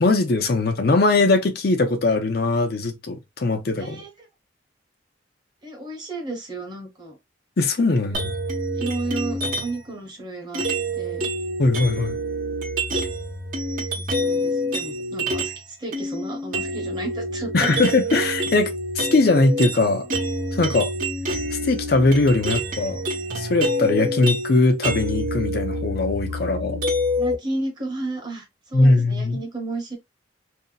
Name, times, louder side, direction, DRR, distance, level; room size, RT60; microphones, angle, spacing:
voice 1, 0.0-4.0 7.6-8.3 11.6-12.2 17.5-20.1 20.5-20.9 21.6-23.0 23.3-26.8 28.7-29.4, left 2 dB, 55° left, 0.6 m, -20 dB
voice 2, 3.8-4.3 5.6-7.2 8.1-8.3 8.8-10.6 10.9-11.3 13.8-17.7 27.2-30.0, right 2 dB, 25° right, 1.0 m, -33 dB
sound 1, 8.1-9.9 10.5-15.6 15.9-27.3, equal, 50° right, 0.9 m, -27 dB
2.7 x 2.1 x 3.7 m
head